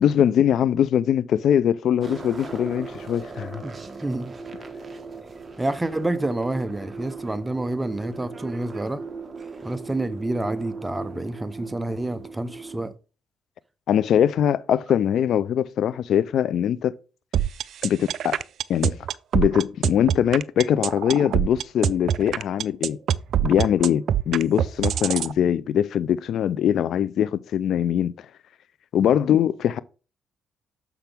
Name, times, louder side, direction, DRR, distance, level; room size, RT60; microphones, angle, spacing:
voice 1, 0.0-3.6 13.9-16.9 17.8-18.4 18.7-19.0 19.3-23.0 23.4-28.1 28.9-29.8, left 9 dB, 70° left, 0.3 m, -22 dB
sound 1, 2.0-12.9, right 4 dB, 30° right, 1.2 m, -38 dB
voice 2, 3.6-4.3 5.6-9.0 9.6-12.9 29.0-29.2, right 2 dB, 15° right, 0.7 m, -28 dB
sound 2, 17.3-25.3, right 9 dB, 70° right, 0.3 m, -24 dB
6.9 x 5.9 x 3.4 m
cardioid pair, 90°, 0 cm